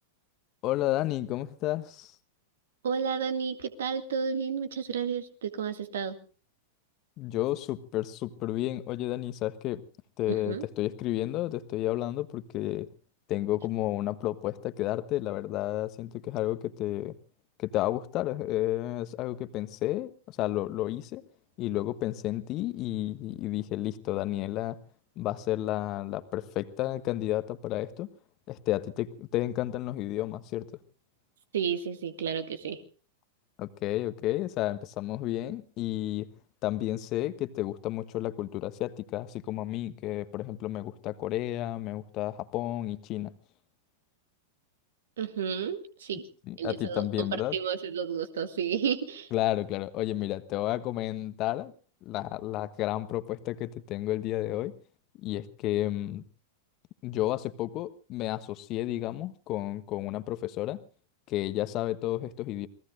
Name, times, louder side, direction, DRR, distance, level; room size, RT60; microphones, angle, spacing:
voice 1, 0.6-2.1 7.2-9.8 10.2-12.9 13.3-17.1 17.6-21.2 21.6-24.8 25.2-28.1 28.5-30.7 33.6-36.3 36.6-43.3 46.5-47.5 49.3-51.7 52.0-54.7 55.2-56.2 57.0-60.8 61.3-62.7, left 15 dB, 40° left, 12 dB, 1.3 m, -31 dB
voice 2, 2.8-6.2 10.3-10.7 31.5-32.8 45.2-46.2 46.6-49.3, right 7 dB, 70° right, 9 dB, 2.1 m, -32 dB
28.0 x 19.5 x 2.6 m, 0.38 s
figure-of-eight pair, 95°, 0 cm